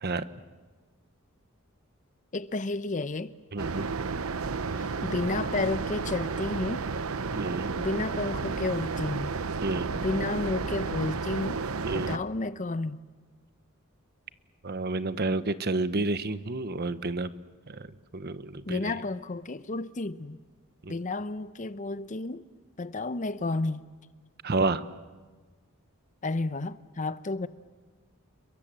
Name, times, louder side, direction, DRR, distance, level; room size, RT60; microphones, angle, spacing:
voice 1, 2.3-3.3 4.7-6.9 7.8-9.3 9.9-11.6 11.9-13.0 18.7-20.4 20.9-22.4 22.8-23.9 26.2-27.5, left 2 dB, 35° left, 0.7 m, -31 dB
voice 2, 3.5-3.9 7.3-7.8 9.6-9.9 11.8-12.2 14.6-17.3 17.7-18.9 20.8-20.9 24.4-24.8, right 2 dB, 50° right, 1.0 m, -30 dB
sound 1, 3.6-12.2, right 4 dB, 85° right, 0.9 m, -32 dB
29.5 x 22.5 x 7.6 m
head